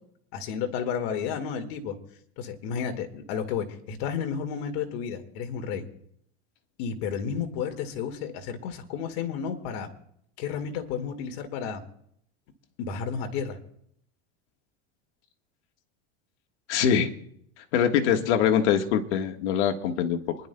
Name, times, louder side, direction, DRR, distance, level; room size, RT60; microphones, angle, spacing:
voice 1, 0.3-2.0 2.4-5.9 6.8-9.9 10.4-11.8 12.8-13.6, left 7 dB, 65° left, 5 dB, 1.9 m, -32 dB
voice 2, 16.7-17.1 17.7-20.4, left 8 dB, 80° left, 4 dB, 1.5 m, -23 dB
28.0 x 11.0 x 2.2 m, 0.68 s
supercardioid pair, 150°, 34 cm